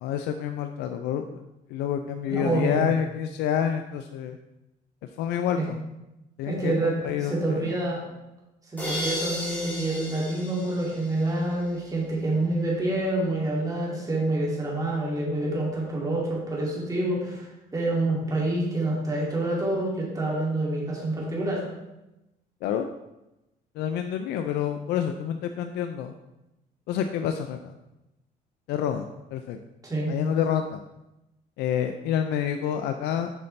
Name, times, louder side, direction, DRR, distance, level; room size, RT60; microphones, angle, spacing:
voice 1, 0.0-1.4 1.7-4.4 5.2-5.8 6.4-7.7 22.6-22.9 23.8-26.1 26.9-27.7 28.7-29.6 30.1-30.8 31.6-33.3, left 9 dB, 80° left, 7 dB, 0.4 m, -28 dB
voice 2, 2.3-2.8 5.5-5.6 6.4-6.9 7.2-8.0 8.7-17.5 17.7-21.7 29.8-30.1, right 2 dB, 20° right, -4 dB, 2.5 m, -27 dB
sound 1, 8.8-11.6, left 1 dB, 10° left, 2.5 m, -34 dB
8.1 x 5.6 x 3.2 m, 0.95 s
cardioid pair, 110°, 17 cm